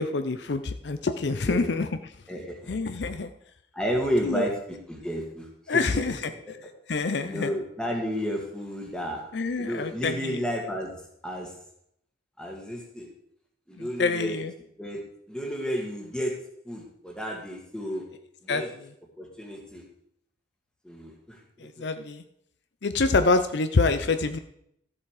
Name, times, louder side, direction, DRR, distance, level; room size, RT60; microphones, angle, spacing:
voice 1, 0.0-1.9 2.7-3.3 4.2-4.4 5.7-6.2 6.9-7.5 9.3-10.4 14.0-14.5 18.5-18.6 21.6-22.2 22.8-24.4, left 3 dB, 60° left, 10 dB, 0.6 m, -26 dB
voice 2, 2.3-2.7 3.7-6.5 7.2-9.2 9.6-10.9 11.2-11.5 12.4-13.1 13.7-14.4 14.8-16.3 16.6-18.0 18.4-18.7 19.2-19.8 20.8-21.4 21.8-21.9, equal, 5° left, 0 dB, 2.0 m, -32 dB
13.5 x 7.1 x 4.8 m, 0.72 s
head